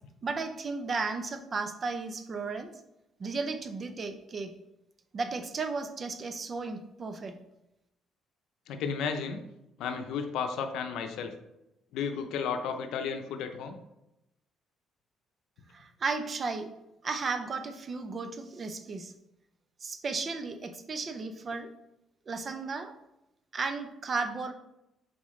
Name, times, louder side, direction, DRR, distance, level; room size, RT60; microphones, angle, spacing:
voice 1, 0.2-2.7 3.2-4.5 5.1-7.4 15.7-16.7 17.0-19.1 19.8-21.7 22.3-22.9 23.5-24.5, right 4 dB, 35° right, 8 dB, 0.6 m, -34 dB
voice 2, 8.7-9.4 9.8-11.3 11.9-13.8, left 6 dB, 85° left, 7 dB, 0.7 m, -33 dB
7.4 x 4.3 x 3.2 m, 0.89 s
cardioid pair, 120°, 0 cm